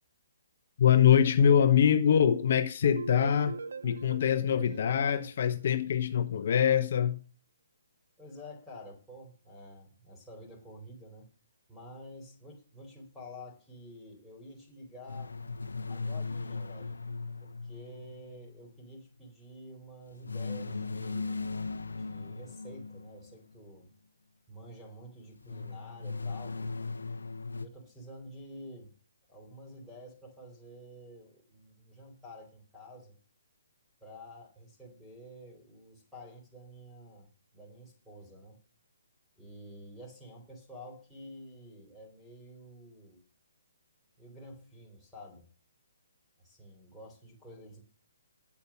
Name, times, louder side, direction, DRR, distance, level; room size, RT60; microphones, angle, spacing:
voice 1, 0.8-3.5 3.8-7.2, left 8 dB, 55° left, 1.0 m, -24 dB
sound 1, 2.8-5.8, right 4 dB, 70° right, 0.7 m, -42 dB
voice 2, 4.5-5.3 8.2-11.3 11.7-15.3 15.9-17.0 17.4-21.5 22.0-23.9 24.5-26.7 27.5-28.9 29.3-33.2 34.0-38.6 39.4-43.2 44.2-45.5 46.4-47.8, equal, ahead, 4.3 m, -49 dB
sound 2, 15.1-18.6 20.2-23.3 25.4-27.7, left 3 dB, 85° left, 0.8 m, -38 dB
8.6 x 8.2 x 7.2 m
hypercardioid pair, 145°, 0 cm